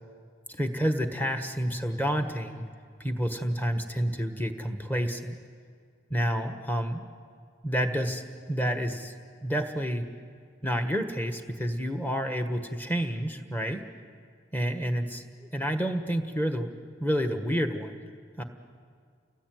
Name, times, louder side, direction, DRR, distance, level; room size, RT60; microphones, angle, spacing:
voice 1, 0.5-2.7 3.0-5.4 6.1-7.0 7.6-8.2 8.5-9.1 9.4-10.1 10.6-13.8 14.5-16.7 17.0-17.9 18.4-18.5, equal, 10° left, 6 dB, 1.5 m, -29 dB
29.5 x 19.0 x 9.4 m, 2.1 s
head